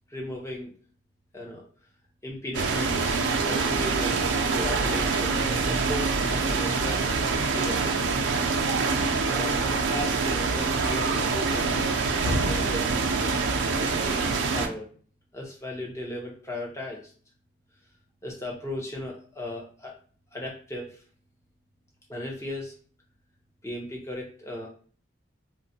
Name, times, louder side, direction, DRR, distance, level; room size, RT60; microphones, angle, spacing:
voice 1, 0.1-0.7 1.3-1.6 2.2-3.2 3.4-4.3 4.5-7.2 7.5-7.9 9.2-9.6 9.9-11.8 12.2-13.1 13.8-14.9 15.3-17.1 18.2-19.9 20.3-21.0 22.1-22.7 23.6-24.7, left 1 dB, 15° left, -2 dB, 0.7 m, -36 dB
sound 1, 2.5-14.7, right 4 dB, 80° right, 0.4 m, -25 dB
3.0 x 2.1 x 2.7 m, 0.43 s
head